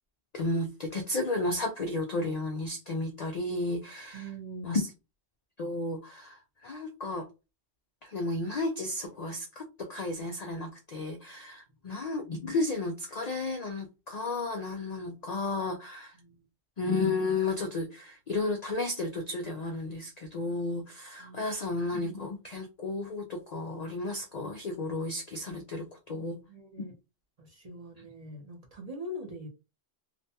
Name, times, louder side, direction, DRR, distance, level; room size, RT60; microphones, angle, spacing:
voice 1, 0.3-4.2 4.6-4.9 5.6-7.3 8.0-16.1 16.8-26.4, left 2 dB, 75° left, 0.3 m, -33 dB
voice 2, 4.1-4.8 16.1-16.4 21.2-21.5 26.1-26.9 27.4-29.5, equal, 40° right, 0.7 m, -43 dB
2.5 x 2.2 x 2.7 m
omnidirectional pair, 1.2 m